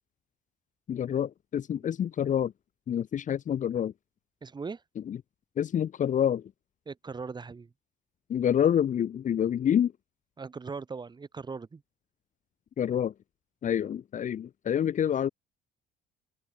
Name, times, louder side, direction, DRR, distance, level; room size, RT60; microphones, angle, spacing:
voice 1, 0.9-2.5 2.9-3.9 5.1-5.2 5.6-6.4 8.3-9.9 12.8-13.1 13.6-15.3, left 9 dB, 50° left, 2.0 m, -27 dB
voice 2, 4.4-4.8 6.9-7.7 10.4-11.8, right 4 dB, 25° right, 3.9 m, -39 dB
open air
cardioid pair, 110°, 17 cm